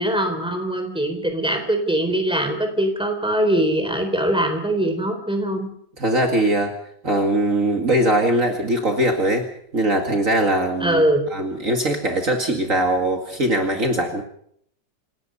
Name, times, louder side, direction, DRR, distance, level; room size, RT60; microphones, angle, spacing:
voice 1, 0.0-5.7 10.8-11.2, right 1 dB, 5° right, 5 dB, 3.9 m, -22 dB
voice 2, 6.0-6.7 7.0-9.5 9.7-11.0 11.3-14.2, right 1 dB, 50° right, 3 dB, 2.6 m, -21 dB
28.0 x 17.5 x 5.5 m, 0.68 s
omnidirectional pair, 1.8 m